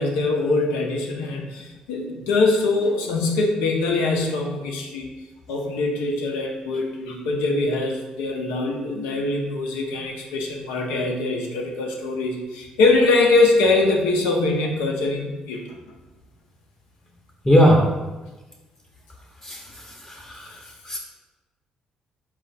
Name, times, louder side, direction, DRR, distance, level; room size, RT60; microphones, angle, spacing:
voice 1, 0.0-5.1 5.5-15.6, left 3 dB, 85° left, 0 dB, 0.6 m, -23 dB
voice 2, 17.4-17.8 19.4-19.6 20.1-20.5 20.9-21.0, equal, 25° left, -1 dB, 0.7 m, -17 dB
4.2 x 2.4 x 4.0 m, 1.1 s
supercardioid pair, 55°, 3 cm